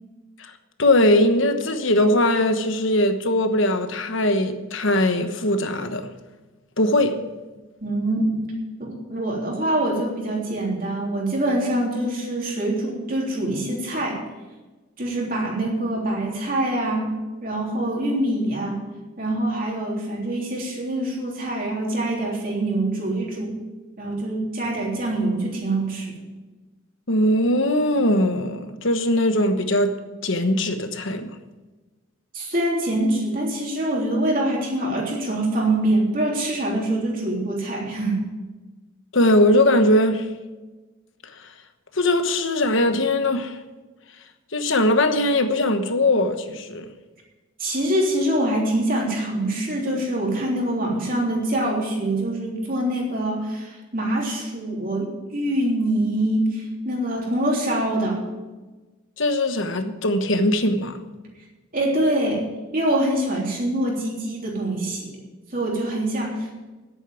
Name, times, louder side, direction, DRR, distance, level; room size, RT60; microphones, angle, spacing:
voice 1, 0.8-6.1 6.8-7.3 27.1-31.4 39.1-40.3 41.9-43.6 44.5-46.9 59.2-61.0, left 1 dB, 65° left, 1.2 m, -20 dB
voice 2, 7.8-8.4 8.8-14.2 15.0-17.1 17.4-18.8 19.2-23.6 24.0-26.1 32.3-38.2 47.6-58.2 61.7-62.4 62.7-65.2 65.5-66.5, right 1 dB, 40° right, 3.4 m, -24 dB
10.5 x 8.4 x 9.1 m
head